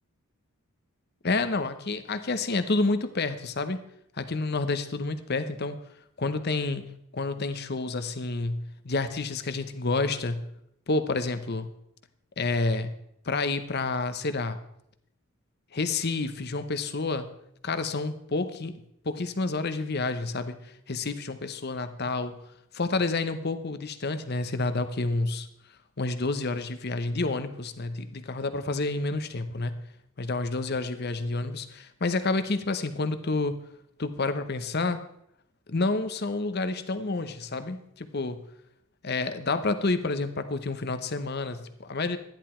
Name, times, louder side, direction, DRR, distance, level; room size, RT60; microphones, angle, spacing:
voice 1, 1.2-3.8 4.2-5.8 6.2-6.8 7.1-10.4 10.9-11.7 12.4-12.9 13.2-14.6 15.7-17.3 17.6-20.6 20.9-22.4 22.7-25.5 26.0-29.8 30.2-33.6 34.0-35.0 35.7-38.4 39.0-42.2, left 3 dB, 45° left, 11 dB, 0.9 m, -29 dB
12.5 x 10.5 x 4.4 m, 0.76 s
head